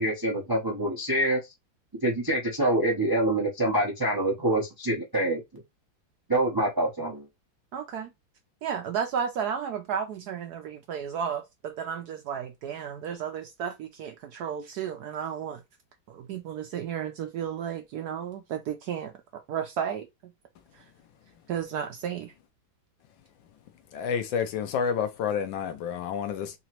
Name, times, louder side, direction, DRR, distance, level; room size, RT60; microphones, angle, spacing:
voice 1, 0.0-1.4 2.0-5.6 6.3-7.3, right 1 dB, 30° right, 0.4 m, -26 dB
voice 2, 7.7-8.1 8.6-15.6 16.1-20.3 20.7-20.8 21.5-22.3, right 8 dB, 75° right, 0.9 m, -33 dB
voice 3, 23.9-26.6, left 7 dB, 75° left, 1.4 m, -29 dB
4.0 x 2.9 x 2.9 m
omnidirectional pair, 2.1 m